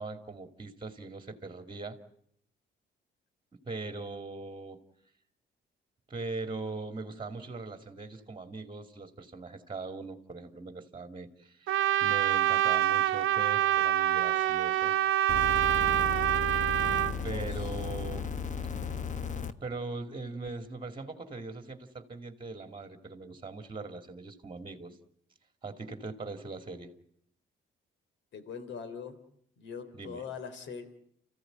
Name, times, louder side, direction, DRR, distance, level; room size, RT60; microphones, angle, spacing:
voice 1, 0.0-2.0 3.5-4.8 6.1-15.0 17.2-18.3 19.6-25.0 25.6-26.9 29.9-30.2, right 3 dB, 25° right, 7 dB, 2.6 m, -40 dB
Trumpet, 11.7-17.1, right 13 dB, 80° right, 1.0 m, -26 dB
sound 1, 15.3-19.5 20.5-20.6, left 5 dB, 40° left, 1.3 m, -35 dB
voice 2, 17.2-17.7 28.3-29.2 29.6-30.8, left 6 dB, 70° left, 12 dB, 3.3 m, -42 dB
29.0 x 15.5 x 9.2 m, 0.69 s
cardioid pair, 90°, 20 cm